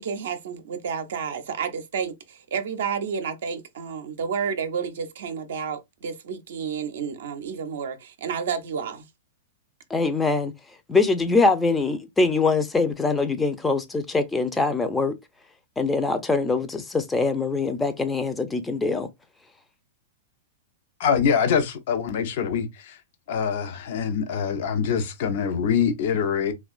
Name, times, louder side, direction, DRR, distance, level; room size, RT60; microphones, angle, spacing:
voice 1, 0.0-9.1, right 6 dB, 65° right, 0.5 m, -30 dB
voice 2, 9.9-10.5 10.9-15.2 15.8-19.1, left 3 dB, 10° left, 0.5 m, -23 dB
voice 3, 21.0-23.0 23.3-26.5, left 7 dB, 55° left, 0.6 m, -24 dB
2.9 x 2.2 x 2.4 m
hypercardioid pair, 105°, 0 cm